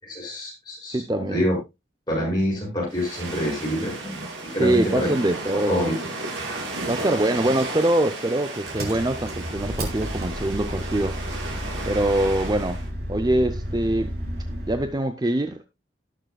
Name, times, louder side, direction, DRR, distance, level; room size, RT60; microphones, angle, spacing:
voice 1, 0.0-1.6 2.1-5.1 5.7-5.9, equal, 25° left, 5.9 m, -26 dB
voice 2, 0.9-1.4 4.6-6.0 6.9-11.2 11.9-12.8 13.1-14.1 14.7-15.6, right 1 dB, 20° right, 0.6 m, -23 dB
sound 1, 2.9-12.9, right 2 dB, 80° right, 3.2 m, -34 dB
Engine, 8.6-14.9, equal, 55° right, 3.3 m, -32 dB
18.0 x 6.6 x 2.3 m
head